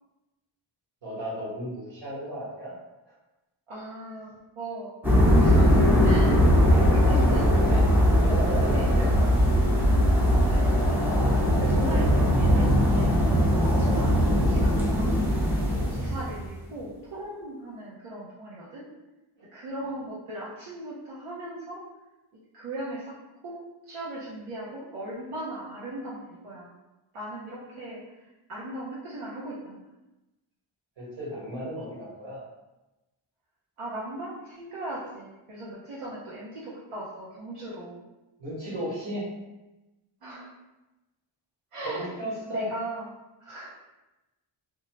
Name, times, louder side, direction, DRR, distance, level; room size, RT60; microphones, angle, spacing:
voice 1, 1.0-2.7 8.1-9.3 19.4-19.5 31.0-32.4 38.4-39.2 41.8-42.7, equal, 60° right, -7 dB, 1.4 m, -35 dB
voice 2, 3.7-4.9 5.4-9.4 10.1-15.2 15.7-18.8 19.5-21.8 22.5-23.2 23.4-26.7 27.1-28.2 28.5-29.8 33.8-38.0 40.2-40.5 41.7-42.1 42.5-43.0 43.4-43.7, right 1 dB, 90° right, -7 dB, 0.8 m, -38 dB
sound 1, 5.0-16.4, equal, 5° right, 0.4 m, -20 dB
2.7 x 2.3 x 3.0 m, 1.0 s
wide cardioid pair, 150°, 50 cm